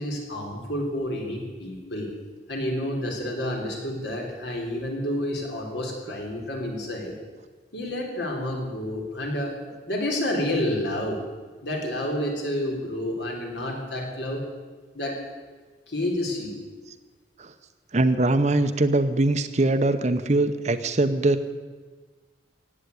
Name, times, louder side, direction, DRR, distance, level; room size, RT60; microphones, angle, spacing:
voice 1, 0.0-2.1 2.5-7.1 7.7-9.5 9.9-11.2 11.6-14.4 14.9-15.2 15.9-16.5, left 1 dB, 70° left, 0 dB, 3.7 m, -29 dB
voice 2, 17.9-21.5, right 2 dB, 40° right, 10 dB, 0.8 m, -22 dB
16.5 x 9.3 x 8.4 m, 1.4 s
head